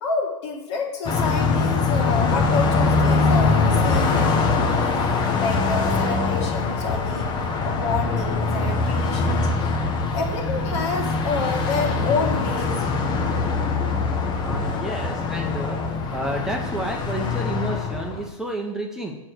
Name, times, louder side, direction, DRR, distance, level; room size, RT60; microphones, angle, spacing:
voice 1, 0.0-5.0 5.4-7.3 7.6-9.5 10.1-12.8, left 4 dB, 55° left, 1 dB, 2.3 m, -28 dB
Car passing by, 1.0-18.3, left 4 dB, 25° left, 1.1 m, -23 dB
voice 2, 14.4-15.8 16.1-19.2, right 1 dB, 5° right, 0 dB, 1.0 m, -30 dB
7.4 x 4.7 x 6.4 m, 1.1 s
hypercardioid pair, 115°, 17 cm